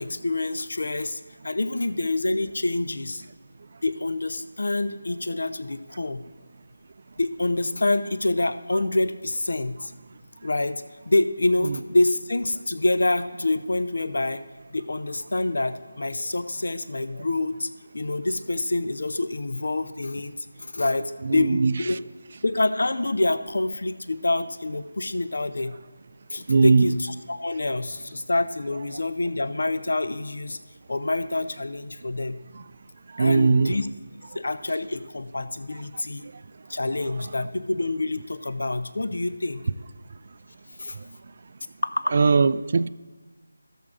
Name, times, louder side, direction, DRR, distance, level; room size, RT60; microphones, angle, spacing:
voice 1, 0.0-3.2 3.8-6.2 7.2-9.9 10.4-14.4 14.7-20.4 20.7-22.0 22.4-25.8 26.3-30.6 30.9-32.4 33.2-33.9 34.3-36.2 36.7-39.7 40.8-41.0 41.8-42.1, left 2 dB, 60° left, 0.6 m, -26 dB
voice 2, 21.2-21.7 26.5-26.9 33.1-33.7 42.1-42.9, right 4 dB, 40° right, 0.3 m, -19 dB
18.0 x 7.1 x 2.5 m
figure-of-eight pair, 160°, 0 cm